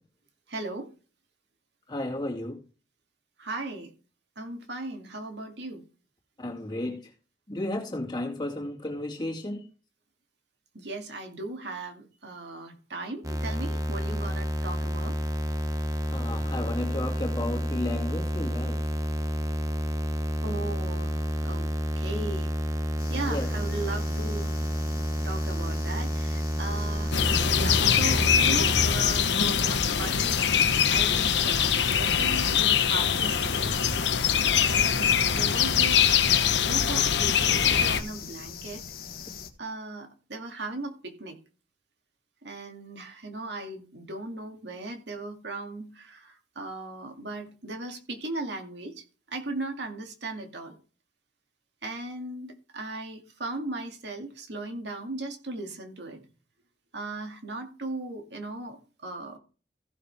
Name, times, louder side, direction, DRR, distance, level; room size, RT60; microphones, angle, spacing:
voice 1, 0.5-0.9 3.4-3.9 4.4-5.8 10.7-15.2 20.4-21.7 22.0-22.5 23.1-24.6 25.2-27.2 27.5-30.4 30.9-33.7 34.5-38.8 39.6-41.4 42.4-50.8 51.8-56.2 56.9-59.4, right 2 dB, 70° right, 2.3 m, -37 dB
voice 2, 1.9-2.6 6.4-7.0 7.5-9.6 16.1-18.8 23.3-23.5, left 1 dB, 25° left, 2.5 m, -33 dB
sound 1, 13.2-28.9, equal, 20° right, 0.9 m, -29 dB
sound 2, 23.0-39.5, left 5 dB, 50° left, 1.5 m, -43 dB
sound 3, 27.1-38.0, left 8 dB, 70° left, 1.0 m, -23 dB
15.5 x 6.7 x 3.4 m
head